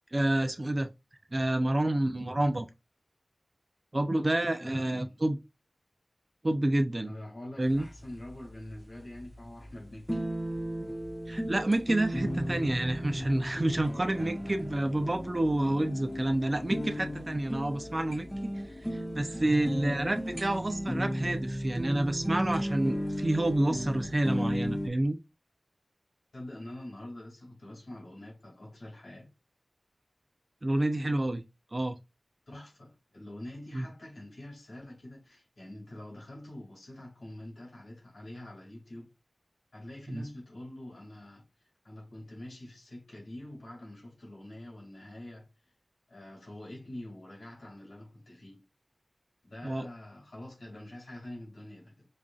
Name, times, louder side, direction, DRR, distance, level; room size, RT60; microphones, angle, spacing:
voice 1, 0.1-0.9 1.3-2.7 3.9-5.4 6.4-7.1 7.6-7.9 11.3-18.3 19.1-25.2 30.6-31.4 31.7-32.0 33.7-33.9 40.1-40.2 49.6-49.9, right 1 dB, 40° right, 0.5 m, -28 dB
voice 2, 4.6-5.2 7.1-10.2 14.2-14.7 26.3-29.3 32.5-39.1 39.7-45.5 46.1-48.6 49.4-52.1, left 1 dB, 90° left, 2.4 m, -45 dB
sound 1, 7.6-24.9, equal, ahead, 0.9 m, -35 dB
sound 2, 12.1-21.1, left 2 dB, 50° left, 0.3 m, -45 dB
5.2 x 2.5 x 2.3 m
wide cardioid pair, 45°, 0 cm